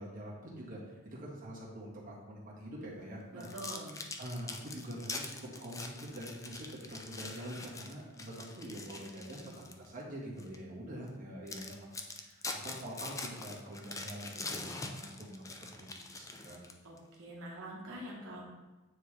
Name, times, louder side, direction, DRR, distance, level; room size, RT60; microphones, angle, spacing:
voice 1, 0.0-3.5 4.2-16.6, right 1 dB, 45° right, -6 dB, 1.7 m, -45 dB
voice 2, 3.3-4.0 16.8-18.4, right 1 dB, 80° right, -4 dB, 1.1 m, -45 dB
sound 1, 3.4-9.9 10.4-10.6 11.1-11.2 11.5-17.0, left 3 dB, 15° left, 0.4 m, -44 dB
9.2 x 3.7 x 3.3 m, 1.1 s
head